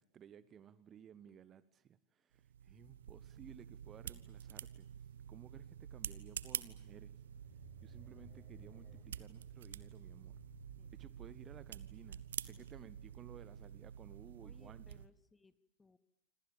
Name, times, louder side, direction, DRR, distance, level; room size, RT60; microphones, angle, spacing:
voice 1, 0.0-4.9 5.3-7.2 7.8-10.4 10.9-14.8, right 8 dB, 25° right, 1.0 m, -57 dB
sound 1, 2.3-15.1, right 9 dB, 65° right, 1.0 m, -48 dB
sound 2, 7.1-14.9, right 2 dB, 5° right, 6.4 m, -63 dB
voice 2, 14.4-16.0, left 4 dB, 10° left, 1.3 m, -66 dB
27.0 x 26.0 x 7.4 m
figure-of-eight pair, 90°, 0 cm